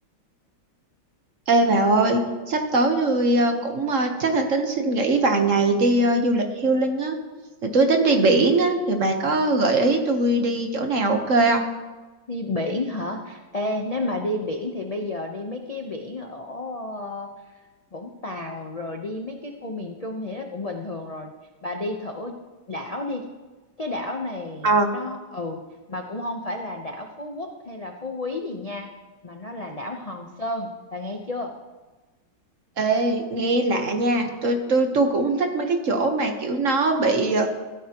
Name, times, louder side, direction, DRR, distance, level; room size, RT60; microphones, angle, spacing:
voice 1, 1.5-2.2 2.5-7.2 7.6-11.7 24.6-24.9 32.8-37.5, right 2 dB, 45° right, 5 dB, 1.3 m, -21 dB
voice 2, 12.3-17.6 17.9-21.3 21.6-22.4 22.7-23.3 23.8-25.6 25.9-28.9 29.2-31.6, left 2 dB, 65° left, 2 dB, 0.3 m, -31 dB
15.0 x 12.5 x 3.0 m, 1.2 s
omnidirectional pair, 2.1 m